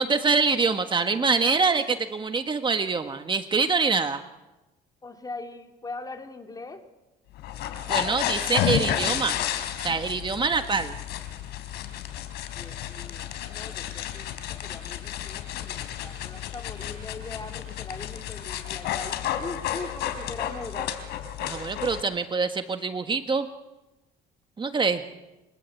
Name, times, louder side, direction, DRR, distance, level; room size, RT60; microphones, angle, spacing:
voice 1, 0.0-4.2 7.9-9.4 9.8-10.9 21.4-23.5 24.6-25.0, right 4 dB, 30° right, 7 dB, 1.6 m, -25 dB
voice 2, 5.0-6.8 12.5-20.9, left 3 dB, 20° left, 4 dB, 3.6 m, -41 dB
sound 1, 7.4-22.0, left 10 dB, 85° left, 3.7 m, -31 dB
29.0 x 24.5 x 8.4 m, 1.1 s
cardioid pair, 110°, 17 cm